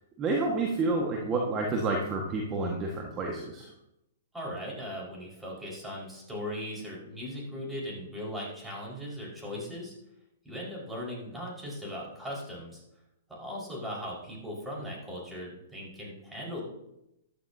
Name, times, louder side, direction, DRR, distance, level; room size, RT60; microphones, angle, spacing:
voice 1, 0.2-3.7, right 3 dB, 25° right, 0 dB, 1.6 m, -29 dB
voice 2, 4.3-9.9 10.4-12.8 13.3-16.6, equal, 5° right, -4 dB, 5.0 m, -38 dB
14.5 x 12.0 x 2.8 m, 0.86 s
figure-of-eight pair, 115°, 0 cm